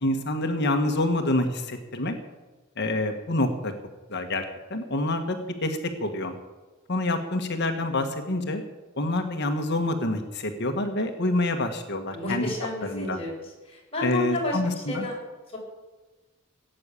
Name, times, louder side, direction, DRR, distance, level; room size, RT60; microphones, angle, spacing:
voice 1, 0.0-2.1 2.8-3.7 4.1-4.4 4.7-5.4 5.6-6.3 6.9-8.6 9.0-12.5 12.8-13.2 14.0-15.0, left 2 dB, 55° left, 5 dB, 1.5 m, -27 dB
voice 2, 12.1-13.4 13.6-15.2 15.5-15.6, left 2 dB, 30° left, -3 dB, 6.2 m, -31 dB
17.5 x 8.9 x 8.4 m, 1.2 s
head